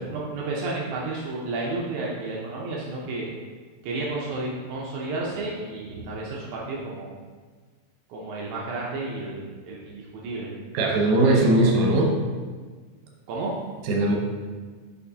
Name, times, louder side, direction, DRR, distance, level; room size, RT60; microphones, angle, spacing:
voice 1, 0.1-3.3 3.8-7.1 8.1-10.5 11.2-11.7 13.3-13.5, right 2 dB, 90° right, -4 dB, 1.7 m, -32 dB
voice 2, 10.7-12.2 13.9-14.1, right 2 dB, 70° right, 0 dB, 2.0 m, -19 dB
6.8 x 5.2 x 2.8 m, 1.4 s
omnidirectional pair, 4.5 m